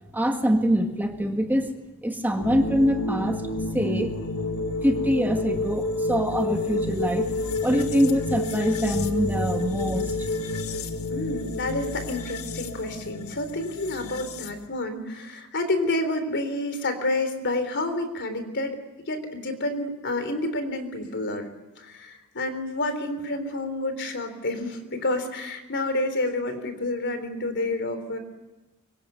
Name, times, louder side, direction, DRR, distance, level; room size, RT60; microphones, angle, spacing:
voice 1, 0.1-1.7 2.0-4.5 4.8-7.3 7.6-10.6, equal, 10° right, 4 dB, 1.7 m, -25 dB
sound 1, 2.4-14.7, left 2 dB, 75° left, 1.9 m, -30 dB
voice 2, 11.1-18.8 19.1-21.5 21.8-28.2, left 2 dB, 55° left, 9 dB, 3.7 m, -29 dB
24.5 x 23.5 x 9.3 m, 1.1 s
head